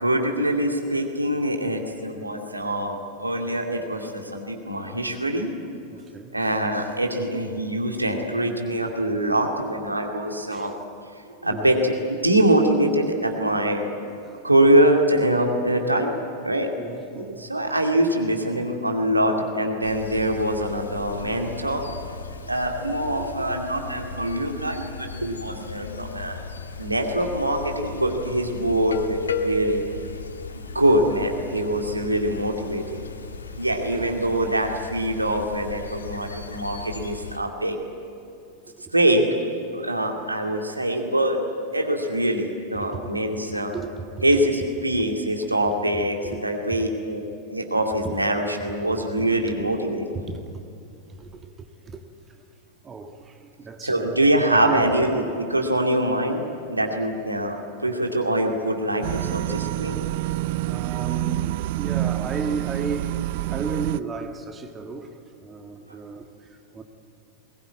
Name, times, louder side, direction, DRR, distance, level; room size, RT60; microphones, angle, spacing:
voice 1, 0.0-5.5 6.3-10.7 11.1-13.8 14.4-16.1 16.4-16.7 17.1-21.8 22.5-26.4 26.8-29.8 30.7-33.0 33.6-37.8 38.9-39.2 39.7-41.4 41.7-43.7 44.2-47.2 47.5-50.0 53.8-60.0, right 1 dB, 85° right, 2 dB, 2.4 m, -24 dB
voice 2, 5.9-6.3 10.5-10.7 11.5-11.7 14.2-14.5 16.8-17.4 33.9-34.3 42.8-43.1 43.5-44.2 46.2-46.4 46.7-46.9 48.0-48.2 49.1-49.3 49.6-49.7 50.2-50.6 51.1-52.4 52.8-54.2 54.6-54.9 60.5-66.8, right 4 dB, 20° right, 6 dB, 1.7 m, -35 dB
sound 1, 19.8-37.4, left 3 dB, 70° left, 1.5 m, -35 dB
sound 2, 59.0-64.0, right 16 dB, 50° right, 0.4 m, -27 dB
21.5 x 20.0 x 9.5 m, 2.6 s
figure-of-eight pair, 90°, 0 cm